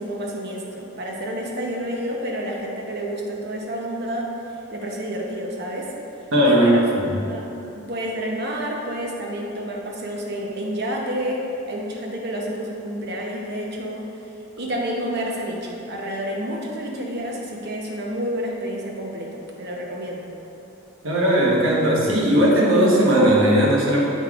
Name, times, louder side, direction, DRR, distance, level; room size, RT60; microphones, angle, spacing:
voice 1, 0.0-4.3 4.7-5.9 6.4-6.8 7.3-7.5 7.7-14.0 14.6-20.3, equal, 55° right, -1 dB, 0.8 m, -29 dB
voice 2, 6.3-6.7 7.0-7.2 21.0-24.0, right 1 dB, 80° right, -4 dB, 1.2 m, -17 dB
8.3 x 5.3 x 2.5 m, 2.9 s
head